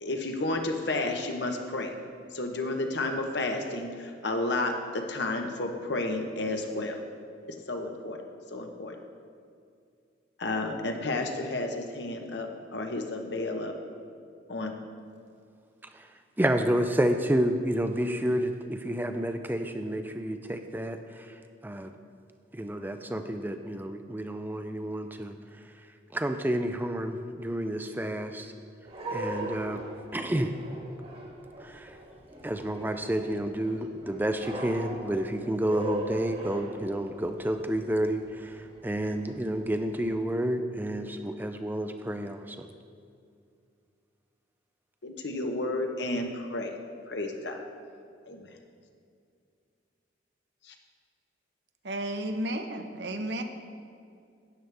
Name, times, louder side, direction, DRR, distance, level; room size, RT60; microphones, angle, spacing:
voice 1, 0.0-1.9 2.3-7.0 7.7-9.0 10.4-13.7 14.5-14.8 45.0-46.8 47.1-47.6 48.3-48.5 50.6-50.7, left 2 dB, 70° left, 4 dB, 1.0 m, -32 dB
voice 2, 16.4-22.0 22.5-25.3 26.1-28.5 29.1-29.8 30.1-30.5 31.6-32.0 32.4-42.7, right 1 dB, 10° right, 7 dB, 0.4 m, -30 dB
sound 1, 28.9-40.2, right 1 dB, 30° right, 1.5 m, -40 dB
voice 3, 51.8-53.4, right 1 dB, 65° right, 6 dB, 0.9 m, -32 dB
12.5 x 9.3 x 3.5 m, 2.4 s
head